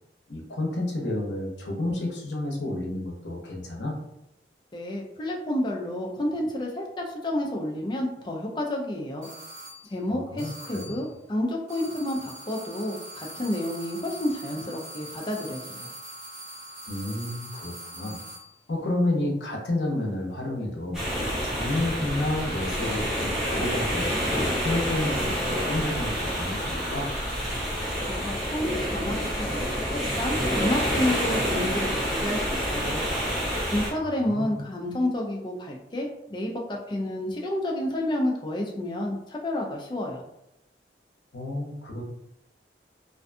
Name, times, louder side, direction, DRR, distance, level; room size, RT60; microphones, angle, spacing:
voice 1, 0.3-4.0 10.1-11.0 16.9-18.2 18.7-24.1 24.6-27.1 34.0-34.6 41.3-42.0, left 1 dB, 70° left, -1 dB, 0.7 m, -30 dB
voice 2, 4.7-9.3 9.9-15.9 28.1-33.0 33.7-40.2, left 1 dB, 25° left, 0 dB, 0.4 m, -30 dB
sound 1, 9.2-9.9 10.4-11.1 11.7-18.5, right 1 dB, 40° right, 0.8 m, -42 dB
sound 2, 20.9-33.9, equal, ahead, 0.7 m, -28 dB
2.5 x 2.3 x 2.5 m, 0.82 s
head